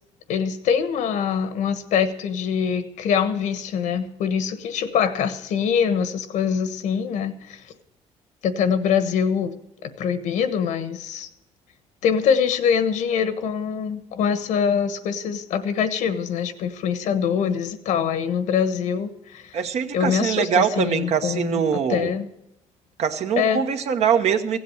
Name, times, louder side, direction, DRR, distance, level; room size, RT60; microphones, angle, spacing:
voice 1, 0.3-7.6 8.4-9.5 9.8-11.3 12.0-19.6 19.9-21.6 21.9-22.3 23.4-23.6, left 7 dB, 75° left, 10 dB, 1.4 m, -24 dB
voice 2, 19.5-22.1 23.0-24.6, right 7 dB, 60° right, 7 dB, 1.2 m, -23 dB
16.0 x 7.9 x 7.8 m, 0.86 s
cardioid pair, 135°, 13 cm